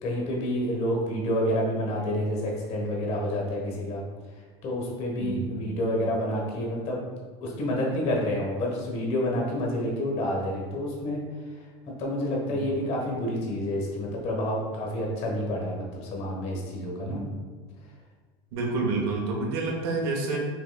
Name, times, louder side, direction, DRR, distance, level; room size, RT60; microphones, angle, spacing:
voice 1, 0.0-4.0 4.6-7.0 7.4-11.2 12.0-17.2, left 1 dB, 50° left, -1 dB, 1.3 m, -28 dB
voice 2, 5.2-6.1 12.5-12.6 17.0-17.4 18.5-20.4, right 3 dB, 70° right, -1 dB, 1.0 m, -29 dB
6.1 x 3.0 x 2.2 m, 1.5 s
supercardioid pair, 130°, 13 cm